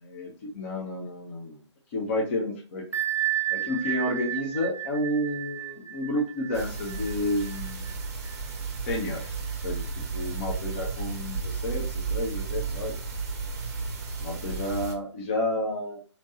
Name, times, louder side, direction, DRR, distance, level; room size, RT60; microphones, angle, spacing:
voice 1, 0.0-1.6 1.9-2.8 3.5-7.9 8.8-9.3 9.6-9.8 10.1-12.9 14.2-16.0, left 1 dB, 25° left, -1 dB, 0.6 m, -30 dB
Bell, 2.9-8.4, right 13 dB, 85° right, 0.6 m, -32 dB
sound 1, 6.5-14.9, right 4 dB, 35° right, 0.7 m, -33 dB
4.3 x 2.8 x 2.7 m, 0.38 s
figure-of-eight pair, 135°, 15 cm